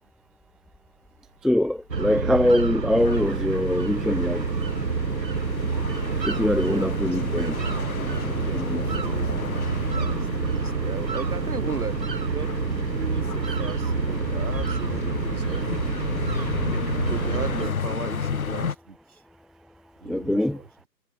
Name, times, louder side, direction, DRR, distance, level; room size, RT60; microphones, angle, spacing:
voice 1, 1.4-4.4 6.2-7.6 8.5-8.8 20.1-20.6, left 1 dB, ahead, 0.4 m, -23 dB
sound 1, 1.9-17.7, right 5 dB, 80° right, 1.3 m, -28 dB
sound 2, 3.0-18.7, left 6 dB, 55° left, 1.8 m, -33 dB
voice 2, 6.6-7.5 8.0-9.7 9.9-12.0 12.3-12.5 12.9-15.8 16.1-16.4 17.1-19.2 20.0-20.9, right 5 dB, 60° right, 4.9 m, -37 dB
figure-of-eight pair, 145°, 49 cm